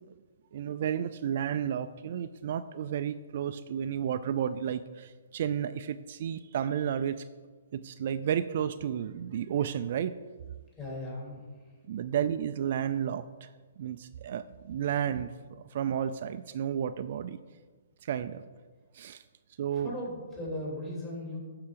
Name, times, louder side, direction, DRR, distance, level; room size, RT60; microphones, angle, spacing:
voice 1, 0.5-7.2 7.7-10.2 11.9-13.5 13.8-17.4 18.0-18.4 18.9-19.2 19.6-19.9, right 9 dB, 50° right, 10 dB, 0.4 m, -32 dB
voice 2, 10.8-11.8 19.7-21.4, left 1 dB, 20° left, -5 dB, 3.5 m, -38 dB
11.5 x 4.8 x 6.7 m, 1.4 s
hypercardioid pair, 150°, 0 cm